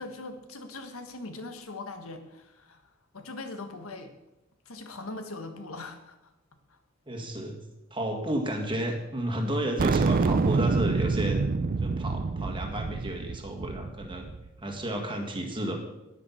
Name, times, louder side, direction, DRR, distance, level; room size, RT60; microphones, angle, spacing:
voice 1, 0.0-2.8 3.1-4.1 4.6-6.2 6.7-6.8, left 2 dB, 85° left, 7 dB, 1.5 m, -40 dB
voice 2, 7.1-7.6 7.9-11.4 11.8-14.3 14.6-15.8, right 1 dB, 25° right, 3 dB, 1.8 m, -32 dB
sound 1, 9.8-14.5, right 4 dB, 45° right, 0.4 m, -27 dB
10.0 x 10.0 x 5.8 m, 0.97 s
head